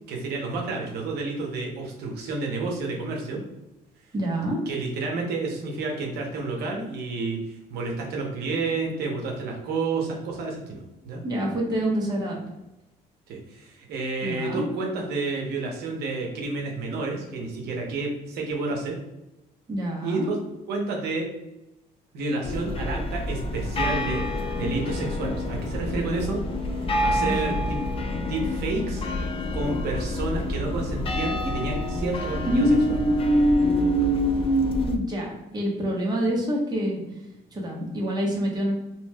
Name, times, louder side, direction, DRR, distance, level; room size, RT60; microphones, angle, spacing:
voice 1, 0.1-3.4 4.7-11.2 13.3-19.0 20.0-20.4 20.7-21.3 22.1-24.2 24.6-27.8 28.3-29.0 29.5-33.0, right 3 dB, 75° right, 0 dB, 0.7 m, -30 dB
voice 2, 4.1-4.6 11.2-12.4 14.2-14.7 19.7-20.3 27.2-27.6 32.5-37.2 37.5-38.7, equal, 25° right, -2 dB, 0.9 m, -25 dB
sound 1, 22.4-35.0, left 2 dB, 35° left, 0.4 m, -29 dB
3.0 x 2.7 x 2.2 m, 0.96 s
cardioid pair, 110°, 17 cm